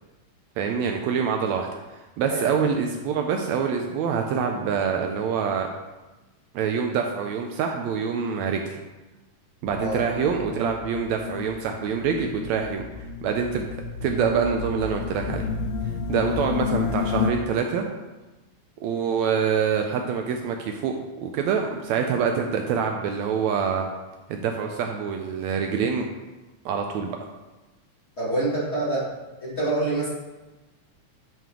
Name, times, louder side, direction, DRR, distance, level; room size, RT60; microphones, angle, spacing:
voice 1, 0.6-1.7 1.9-5.7 6.5-8.8 9.6-13.7 14.0-15.5 16.1-17.9 18.8-23.9 24.3-26.1 26.7-27.2, right 6 dB, 80° right, 3 dB, 1.8 m, -25 dB
voice 2, 2.3-2.7 9.8-10.0 28.2-29.1 29.4-30.1, right 2 dB, 25° left, -9 dB, 2.4 m, -26 dB
sound 1, 9.7-17.3, left 6 dB, 85° left, 1.4 m, -31 dB
9.0 x 5.8 x 3.7 m, 1.1 s
omnidirectional pair, 3.4 m